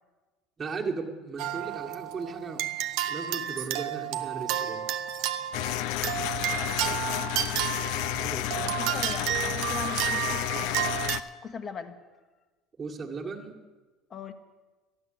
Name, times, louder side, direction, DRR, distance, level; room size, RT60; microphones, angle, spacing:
voice 1, 0.6-2.6 3.1-4.9 8.1-8.4 12.8-13.5, right 4 dB, 25° right, -1 dB, 1.8 m, -36 dB
sound 1, 1.4-11.2, right 12 dB, 65° right, 0.8 m, -31 dB
sound 2, 5.5-11.2, left 14 dB, 70° left, 0.5 m, -31 dB
voice 2, 6.0-7.1 8.2-11.1 11.4-12.0 14.1-14.3, left 6 dB, 30° left, 9 dB, 1.3 m, -41 dB
12.5 x 11.0 x 7.8 m, 1.3 s
cardioid pair, 130°, 0 cm